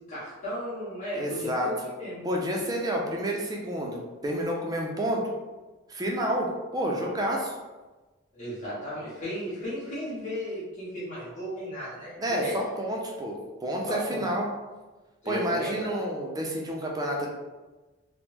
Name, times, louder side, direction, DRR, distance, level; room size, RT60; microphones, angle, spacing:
voice 1, 0.1-2.3 8.3-12.5 13.9-14.3 15.2-15.9, left 1 dB, 35° left, -9 dB, 1.3 m, -35 dB
voice 2, 1.1-1.7 2.2-5.2 5.9-7.5 12.2-14.5 15.3-17.3, right 1 dB, 15° right, -1 dB, 0.4 m, -29 dB
3.4 x 2.1 x 2.9 m, 1.2 s
head